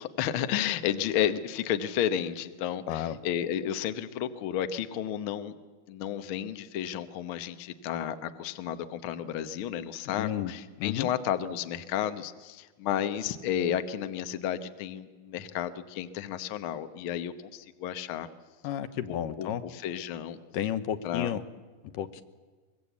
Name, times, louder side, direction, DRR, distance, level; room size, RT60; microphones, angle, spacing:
voice 1, 0.0-5.6 5.9-18.3 19.1-20.4 21.0-21.3, left 10 dB, 70° left, 10 dB, 1.2 m, -32 dB
voice 2, 2.9-3.2 10.2-10.5 10.8-11.1 18.6-19.6 20.5-21.4 21.9-22.2, left 11 dB, 90° left, 11 dB, 2.6 m, -31 dB
23.0 x 22.0 x 8.4 m, 1.3 s
omnidirectional pair, 3.7 m